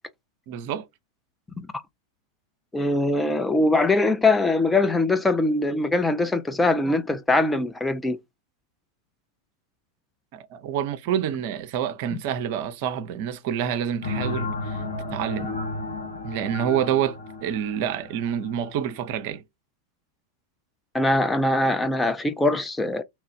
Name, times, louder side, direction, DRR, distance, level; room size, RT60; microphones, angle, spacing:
voice 1, 0.5-0.9 10.3-14.8 15.1-15.5 16.2-19.4, right 9 dB, 50° right, 0.5 m, -27 dB
voice 2, 2.7-8.2 20.9-23.0, left 2 dB, 10° left, 0.4 m, -22 dB
sound 1, 14.0-19.4, left 3 dB, 60° left, 1.5 m, -33 dB
3.0 x 2.3 x 3.1 m
figure-of-eight pair, 90°, 0 cm